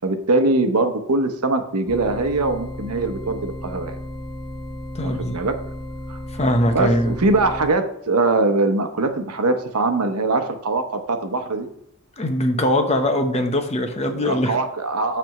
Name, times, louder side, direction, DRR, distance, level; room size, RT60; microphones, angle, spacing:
voice 1, 0.0-4.0 5.0-5.6 6.1-6.2 6.7-11.7 14.2-15.2, right 2 dB, 85° right, 7 dB, 0.9 m, -22 dB
sound 1, 1.9-7.7, equal, 5° left, 1.7 m, -34 dB
voice 2, 4.9-5.5 6.3-7.2 12.2-14.6, left 1 dB, 30° left, 5 dB, 0.9 m, -21 dB
9.2 x 3.4 x 5.8 m, 0.76 s
head